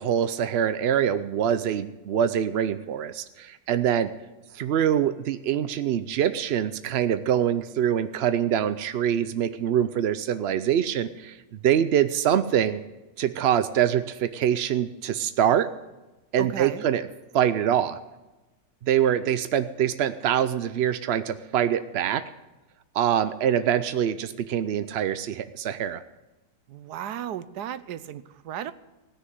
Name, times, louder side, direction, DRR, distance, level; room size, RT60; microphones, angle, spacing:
voice 1, 0.0-4.1 4.5-11.4 11.6-12.8 13.2-15.7 16.3-17.1 17.3-18.0 18.8-22.2 22.9-26.0, right 9 dB, 70° right, 12 dB, 0.6 m, -24 dB
voice 2, 16.4-16.8 26.7-28.7, right 10 dB, 90° right, 14 dB, 1.3 m, -35 dB
17.0 x 6.7 x 9.3 m, 1.1 s
omnidirectional pair, 1.7 m